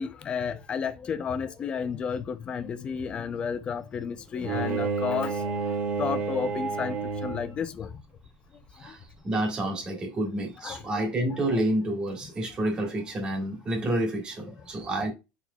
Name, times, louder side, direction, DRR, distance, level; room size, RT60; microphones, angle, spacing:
voice 1, 0.0-5.7 6.0-7.0 7.2-7.9 8.9-9.0 10.6-10.8 11.5-11.6, left 6 dB, 25° left, 0.5 m, -32 dB
Bowed string instrument, 4.4-7.7, right 4 dB, 40° right, 1.2 m, -30 dB
voice 2, 8.8-15.1, right 1 dB, 20° right, 1.6 m, -29 dB
4.2 x 4.2 x 2.3 m
cardioid pair, 150°, 4 cm